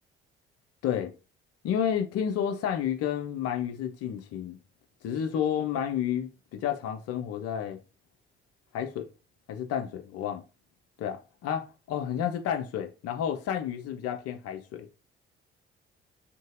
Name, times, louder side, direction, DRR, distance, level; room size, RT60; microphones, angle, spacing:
voice 1, 0.8-1.1 1.6-4.6 5.0-7.8 8.7-9.1 9.5-10.4 11.0-14.9, left 9 dB, 55° left, 0.6 m, -31 dB
2.9 x 2.7 x 2.5 m
figure-of-eight pair, 45°, 30 cm